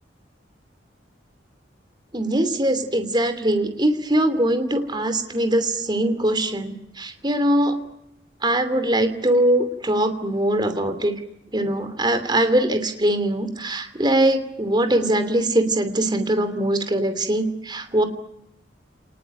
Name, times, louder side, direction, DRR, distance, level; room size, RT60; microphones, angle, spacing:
voice 1, 2.1-7.8 8.4-11.1 11.5-18.0, right 1 dB, 25° right, 9 dB, 2.8 m, -22 dB
30.0 x 20.0 x 9.2 m, 0.81 s
head